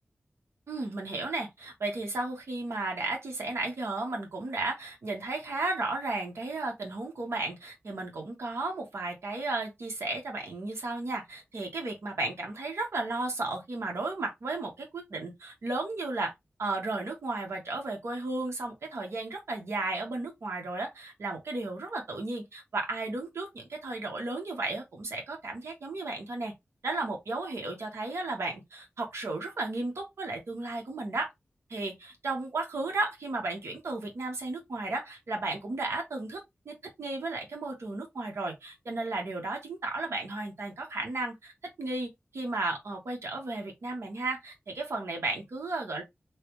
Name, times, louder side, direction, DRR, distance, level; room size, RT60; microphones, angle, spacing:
voice 1, 0.7-16.3 16.6-26.5 26.8-31.3 31.7-41.5 41.8-46.0, right 2 dB, 85° right, 1.0 m, -34 dB
3.2 x 2.2 x 2.9 m
wide cardioid pair, 75°, 4 cm